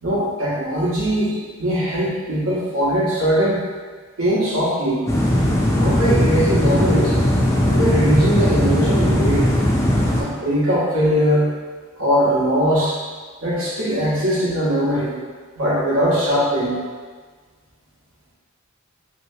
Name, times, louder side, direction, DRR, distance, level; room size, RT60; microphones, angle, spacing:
voice 1, 0.0-3.6 4.2-5.1 5.7-7.2 7.6-9.5 10.2-11.5 12.0-13.0 13.4-15.1 15.6-16.7, equal, 75° right, -7 dB, 1.0 m, -20 dB
sound 1, 5.1-10.2, left 1 dB, 15° left, 0.3 m, -18 dB
3.1 x 2.8 x 2.7 m, 1.5 s
head